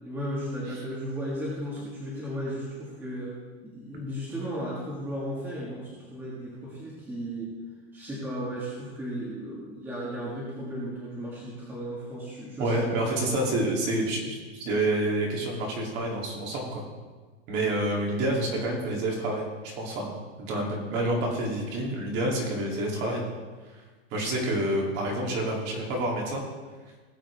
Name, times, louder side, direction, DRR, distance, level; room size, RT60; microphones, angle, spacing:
voice 1, 0.0-3.3 3.6-7.5 7.9-13.3, equal, 5° right, -6 dB, 1.5 m, -35 dB
voice 2, 12.6-16.8 17.5-20.1 20.4-23.2 24.1-26.4, right 1 dB, 35° right, -1 dB, 2.6 m, -28 dB
18.0 x 7.5 x 3.4 m, 1.3 s
supercardioid pair, 170°, 31 cm